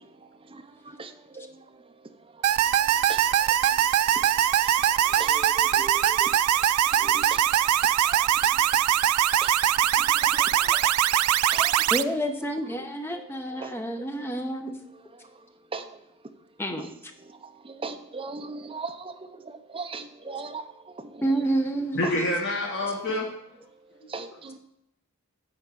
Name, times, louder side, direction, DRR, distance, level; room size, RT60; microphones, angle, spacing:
voice 1, 0.0-1.9 2.3-8.8 9.2-11.0 11.5-11.9 13.1-13.3 13.5-13.8 14.2-14.3 15.1-15.3 15.7-16.0 16.8-16.9 17.2-21.2 24.1-24.6, right 3 dB, 25° right, 0.6 m, -41 dB
sound 1, 2.4-12.0, right 11 dB, 90° right, 0.3 m, -22 dB
voice 2, 11.9-14.8 16.6-16.9 21.2-22.1, right 1 dB, 10° left, 0.7 m, -29 dB
voice 3, 21.9-23.3, left 1 dB, 55° left, 1.2 m, -27 dB
9.9 x 3.6 x 6.8 m
head